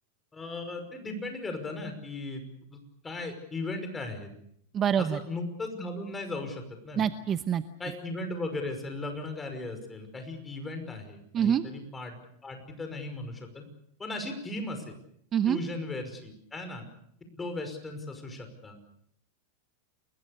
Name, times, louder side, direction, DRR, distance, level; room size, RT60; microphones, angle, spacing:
voice 1, 0.3-2.4 2.7-2.8 3.0-4.3 5.0-7.1 7.8-12.2 12.4-13.7 14.0-14.9 15.5-16.9 17.3-18.9, left 2 dB, 10° left, 7 dB, 5.5 m, -37 dB
voice 2, 4.7-5.2 7.0-7.6 11.3-11.6 15.3-15.6, right 9 dB, 25° right, 11 dB, 0.9 m, -25 dB
29.5 x 22.0 x 6.7 m, 0.70 s
supercardioid pair, 150°, 0 cm